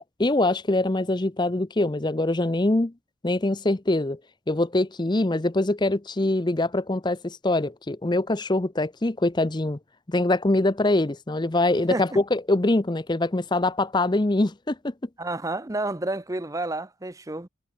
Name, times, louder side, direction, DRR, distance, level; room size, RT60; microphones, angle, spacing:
voice 1, 0.0-2.9 3.2-4.2 4.5-9.8 10.1-14.9, left 2 dB, 20° left, 0.6 m, -24 dB
voice 2, 15.2-17.5, right 2 dB, 15° right, 0.7 m, -30 dB
head